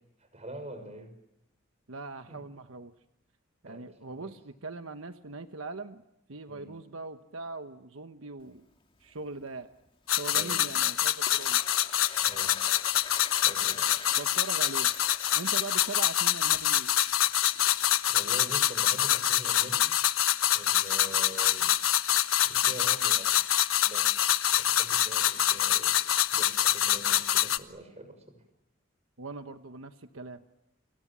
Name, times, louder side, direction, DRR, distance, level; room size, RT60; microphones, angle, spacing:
voice 1, 0.2-1.1 2.3-2.4 3.6-3.9 4.1-4.3 6.5-6.7 10.3-10.7 12.2-12.6 13.4-13.9 18.1-19.9 20.5-21.7 22.4-23.4 23.8-24.2 24.6-26.0 26.3-28.4, right 1 dB, 35° right, 9 dB, 6.3 m, -44 dB
voice 2, 1.9-2.9 3.6-6.0 6.3-8.7 9.0-9.7 10.1-11.6 14.2-14.9 15.3-16.9 29.2-30.4, right 3 dB, 80° right, 8 dB, 1.2 m, -41 dB
Coin (dropping), 8.4-9.6 9.9-10.4 10.6-15.9 16.2-17.9, left 5 dB, 25° left, 2.2 m, -46 dB
sound 1, 10.1-27.6, left 12 dB, 85° left, 1.2 m, -26 dB
30.0 x 27.0 x 7.5 m, 0.83 s
head